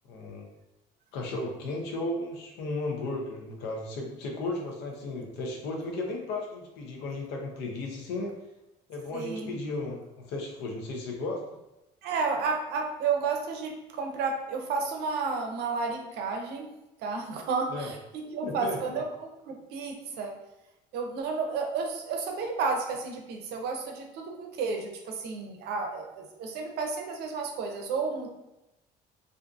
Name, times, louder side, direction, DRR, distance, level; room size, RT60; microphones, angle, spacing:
voice 1, 0.1-0.4 1.1-8.3 8.9-11.4 17.7-17.9 18.4-18.8, left 2 dB, 90° left, 0 dB, 0.6 m, -34 dB
voice 2, 9.1-9.6 12.0-16.7 17.0-20.3 20.9-28.3, right 4 dB, 75° right, 3 dB, 0.5 m, -32 dB
2.5 x 2.5 x 2.3 m, 0.93 s
cardioid pair, 110°, 17 cm